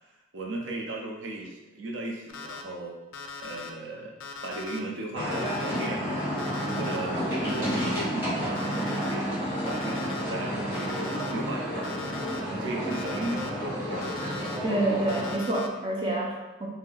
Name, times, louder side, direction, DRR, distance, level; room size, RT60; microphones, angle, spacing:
voice 1, 0.3-2.9 3.4-4.1 4.4-6.4 6.8-9.3 9.6-11.9 12.4-14.1, right 1 dB, 75° right, 0 dB, 0.6 m, -36 dB
Alarm, 2.3-2.6 3.1-3.7 4.2-4.8 5.3-5.9 6.4-7.0 7.5-8.1 8.5-9.1 9.7-10.2 10.7-11.3 11.8-12.4 12.9-13.5 14.0-14.6 15.1-15.7, left 5 dB, 90° left, 0.4 m, -40 dB
sound 1, 5.1-15.3, equal, 10° right, 1.3 m, -31 dB
voice 2, 14.6-16.7, right 1 dB, 25° right, -2 dB, 0.4 m, -28 dB
2.7 x 2.1 x 3.8 m, 1.1 s
head